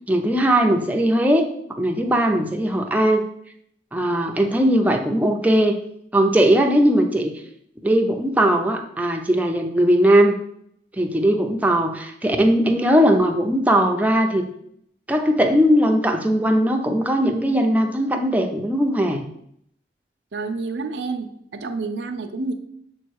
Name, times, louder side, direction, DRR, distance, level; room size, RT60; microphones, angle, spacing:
voice 1, 0.1-3.3 3.9-5.8 6.1-7.3 7.8-10.3 11.0-14.4 15.1-19.2, equal, 10° right, 3 dB, 0.6 m, -19 dB
voice 2, 20.3-22.5, right 3 dB, 80° right, 5 dB, 0.6 m, -29 dB
7.2 x 3.1 x 4.6 m, 0.71 s
head